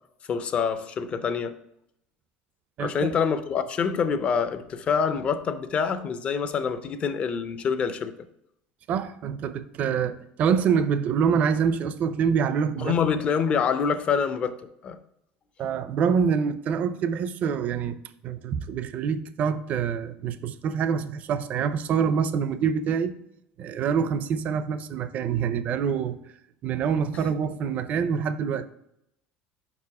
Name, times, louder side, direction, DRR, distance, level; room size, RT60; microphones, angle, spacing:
voice 1, 0.3-1.5 2.8-8.1 12.8-14.5 14.8-15.0, left 6 dB, 30° left, 0.4 m, -26 dB
voice 2, 2.8-3.1 8.9-12.9 15.6-18.0 18.2-23.1 23.6-26.2 26.6-28.7, right 7 dB, 40° right, 0.4 m, -26 dB
5.3 x 4.8 x 4.6 m
cardioid pair, 165°, 4 cm